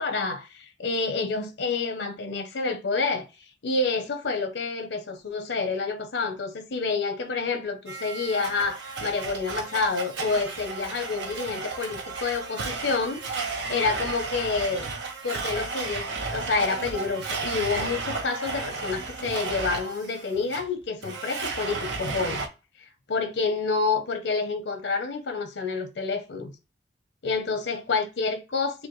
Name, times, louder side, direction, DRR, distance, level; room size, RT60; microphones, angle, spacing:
voice 1, 0.0-3.3 3.6-13.2 13.5-14.9 15.2-22.4 23.1-26.5 27.2-28.9, left 4 dB, 85° left, 0.7 m, -28 dB
Domestic sounds home sounds, 7.9-22.5, right 4 dB, 80° right, 0.8 m, -33 dB
5.0 x 2.3 x 3.0 m
head